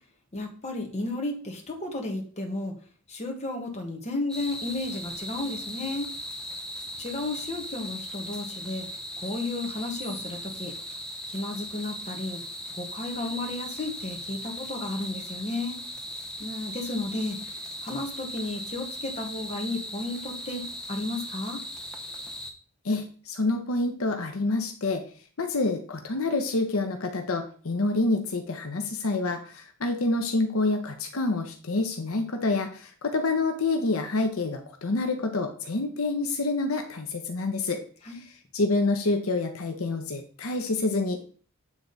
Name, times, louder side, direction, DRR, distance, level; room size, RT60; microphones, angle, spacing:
voice 1, 0.3-2.7 3.1-6.1 7.0-8.9 9.2-10.7 11.3-12.4 12.7-15.8 16.4-17.5 17.8-20.6 20.9-21.6 38.0-38.2, left 2 dB, 30° left, 2 dB, 1.5 m, -33 dB
sound 1, 4.3-22.5, equal, 5° left, 0.9 m, -38 dB
voice 2, 22.8-25.0 25.4-37.8 38.1-38.2 38.5-41.2, left 3 dB, 75° left, 5 dB, 0.9 m, -27 dB
8.5 x 3.7 x 4.0 m, 0.43 s
head